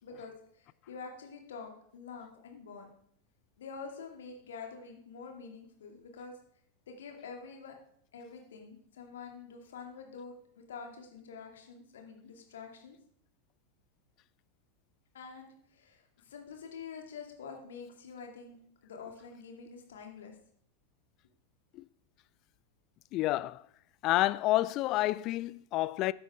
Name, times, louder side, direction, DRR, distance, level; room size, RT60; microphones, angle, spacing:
voice 1, 0.0-2.9 3.6-6.3 6.9-7.8 8.1-13.0 15.1-20.4, left 5 dB, 60° left, 2.4 m, -47 dB
voice 2, 23.1-23.6 24.0-26.1, left 17 dB, 40° left, 0.4 m, -29 dB
13.5 x 9.7 x 3.6 m
figure-of-eight pair, 90°, 0 cm